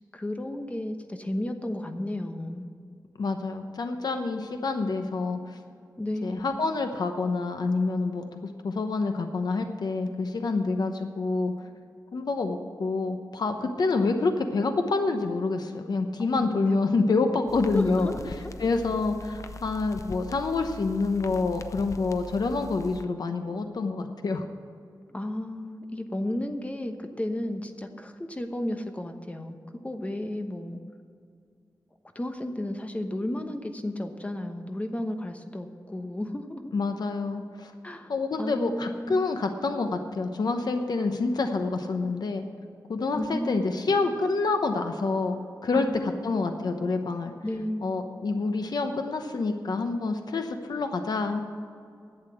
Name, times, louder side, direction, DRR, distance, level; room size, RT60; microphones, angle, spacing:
voice 1, 0.1-2.7 6.0-6.6 16.3-16.8 17.3-18.5 25.1-29.6 29.8-30.8 32.1-36.7 37.8-38.1 38.4-39.2 43.1-44.1 45.7-46.7 47.4-48.0, left 1 dB, 20° left, 6 dB, 1.0 m, -33 dB
voice 2, 3.2-5.6 6.2-11.5 12.1-18.1 18.6-24.4 36.7-37.7 38.1-42.5 42.9-47.3 47.8-51.4, left 3 dB, 70° left, 6 dB, 0.9 m, -27 dB
sound 1, 17.5-23.0, left 3 dB, 45° left, 0.6 m, -42 dB
11.5 x 8.2 x 7.8 m, 2.3 s
wide cardioid pair, 125°, 7 cm